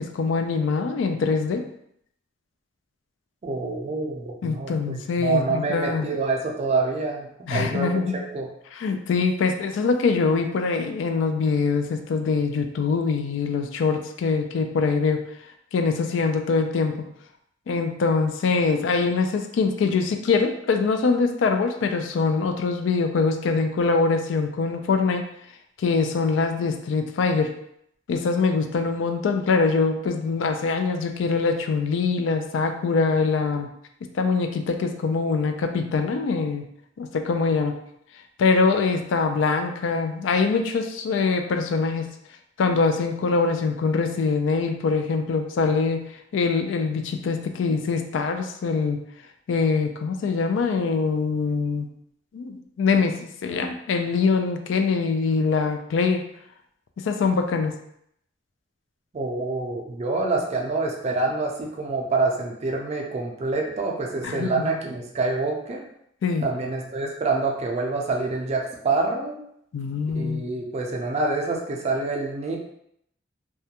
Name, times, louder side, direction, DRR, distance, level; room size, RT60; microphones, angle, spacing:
voice 1, 0.0-1.6 4.4-6.1 7.5-8.3 8.7-15.2 15.7-17.1 17.7-25.2 25.8-27.5 28.1-33.7 34.1-36.6 37.0-37.8 38.4-42.1 42.6-46.0 46.3-49.0 49.5-51.9 52.3-56.2 57.0-57.7 64.2-64.7 66.2-66.5 69.7-70.5, left 4 dB, 80° left, 6 dB, 0.3 m, -23 dB
voice 2, 3.4-8.0 8.3-8.5 59.1-65.8 66.4-69.4 70.1-72.6, right 3 dB, 35° right, 1 dB, 0.4 m, -26 dB
2.3 x 2.1 x 2.8 m, 0.72 s
head